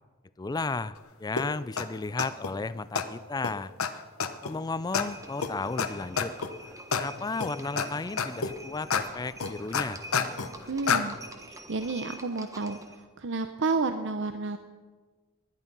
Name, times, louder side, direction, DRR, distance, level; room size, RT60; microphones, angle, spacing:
voice 1, 0.4-3.7 4.4-6.4 7.0-10.0, left 3 dB, 20° left, 16 dB, 0.4 m, -34 dB
sound 1, 1.4-1.5 1.8-1.9 2.2-2.5 3.0-3.1 3.4-3.5 3.8-3.9 4.2-4.5 4.9-5.0 5.4-5.5 5.8-5.9 6.2-6.5 6.9-7.0 7.4-7.9 8.2-8.5 8.9-9.0 9.4-10.5 10.9-11.0, left 6 dB, 75° left, 1.0 m, -27 dB
Livestock farm animals working animals, 4.9-13.0, right 1 dB, 15° right, 1.2 m, -46 dB
voice 2, 10.7-11.1 11.5-14.6, right 3 dB, 60° right, 8 dB, 0.7 m, -31 dB
19.5 x 11.5 x 5.4 m, 1.4 s
head